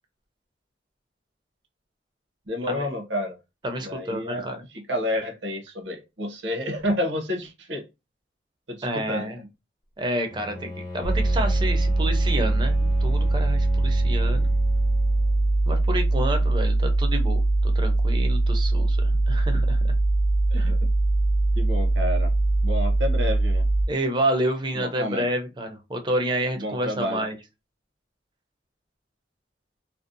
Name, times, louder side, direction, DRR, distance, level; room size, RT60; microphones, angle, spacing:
voice 1, 2.5-3.4 3.8-7.9 8.7-9.5 20.5-20.8 21.6-22.3 22.6-23.7 24.8-25.3 26.5-27.2, left 1 dB, 80° right, 0.8 m, -30 dB
voice 2, 3.6-4.6 8.8-9.4 10.0-14.5 15.7-19.9 20.6-20.7 23.9-27.4, right 1 dB, 25° right, 0.5 m, -29 dB
Bowed string instrument, 10.3-15.6, left 1 dB, 25° left, 0.7 m, -38 dB
sound 1, 11.0-23.9, right 2 dB, 80° left, 0.4 m, -22 dB
2.6 x 2.0 x 2.5 m
head